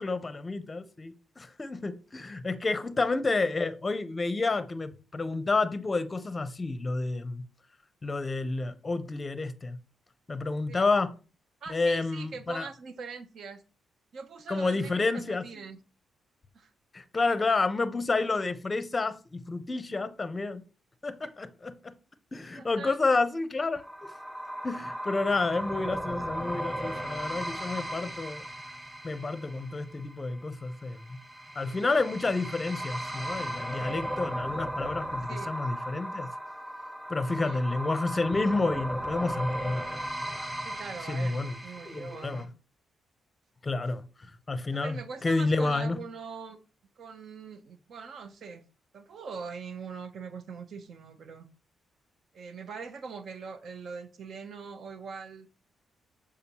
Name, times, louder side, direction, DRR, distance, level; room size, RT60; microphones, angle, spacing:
voice 1, 0.0-7.4 8.0-9.8 10.3-11.1 11.7-12.7 14.5-15.5 16.9-20.6 21.0-21.9 22.3-24.1 24.6-28.4 29.0-31.2 31.6-36.3 37.1-39.8 41.1-41.5 41.8-42.5 43.6-45.0 45.2-46.0, left 3 dB, 25° left, 0.6 m, -30 dB
voice 2, 11.6-13.6 14.1-15.8 16.5-16.7 21.2-21.3 22.6-23.0 35.3-35.5 37.4-37.6 40.6-42.5 44.7-46.6 47.0-48.6 48.9-51.5 52.3-55.5, right 5 dB, 60° right, 0.8 m, -42 dB
sound 1, 23.8-42.4, right 1 dB, 15° right, 1.4 m, -36 dB
6.8 x 4.9 x 2.9 m
cardioid pair, 115°, 0 cm